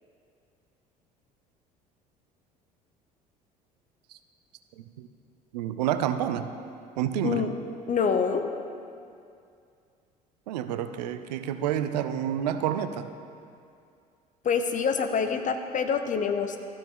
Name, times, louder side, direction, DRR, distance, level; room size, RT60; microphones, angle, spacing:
voice 1, 4.8-5.1 5.5-6.5 7.0-7.5 10.5-13.1, right 10 dB, 75° right, 9 dB, 0.5 m, -29 dB
voice 2, 7.9-8.4 14.4-16.6, left 6 dB, 40° left, 7 dB, 0.8 m, -26 dB
13.5 x 5.1 x 3.6 m, 2.4 s
hypercardioid pair, 60°, 21 cm